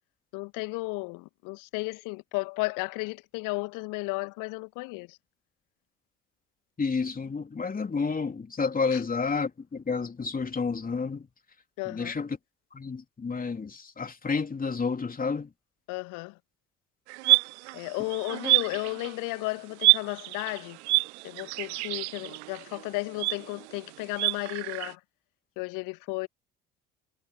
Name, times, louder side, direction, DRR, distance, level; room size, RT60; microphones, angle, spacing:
voice 1, 0.3-5.2 8.9-9.0 11.8-12.1 15.9-16.4 17.7-20.8 21.2-25.0 25.6-26.3, left 25 dB, 60° left, 2.0 m, -34 dB
voice 2, 6.8-11.3 11.9-12.4 12.7-15.5, left 5 dB, 25° left, 3.3 m, -30 dB
sound 1, 17.1-19.3 19.8-24.9, right 23 dB, 65° right, 0.8 m, -27 dB
figure-of-eight pair, 55°, 36 cm